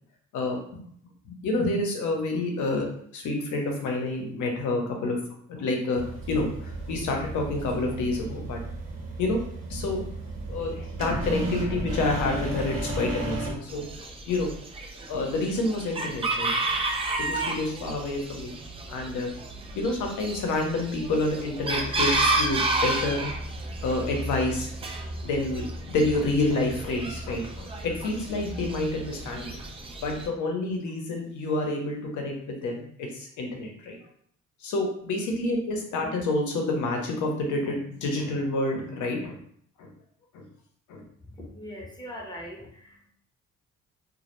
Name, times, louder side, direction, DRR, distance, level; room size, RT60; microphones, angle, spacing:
voice 1, 0.3-0.8 1.2-2.9 3.1-5.2 5.5-8.6 9.2-9.4 9.7-10.1 10.5-13.9 14.3-14.5 15.1-16.5 17.2-18.5 18.9-19.3 19.7-23.3 23.8-24.7 25.2-25.6 25.9-29.6 30.0-34.0 34.6-39.4 39.8-39.9 40.3-40.5 40.9-41.0, left 2 dB, 80° left, 1 dB, 0.7 m, -28 dB
sound 1, 5.9-13.5, right 1 dB, 45° right, 0.9 m, -33 dB
Chicken rooster, 13.7-30.3, right 2 dB, 20° right, 0.3 m, -31 dB
voice 2, 41.4-43.1, equal, 15° left, -2 dB, 0.6 m, -41 dB
2.1 x 2.0 x 2.9 m, 0.63 s
cardioid pair, 90°, 30 cm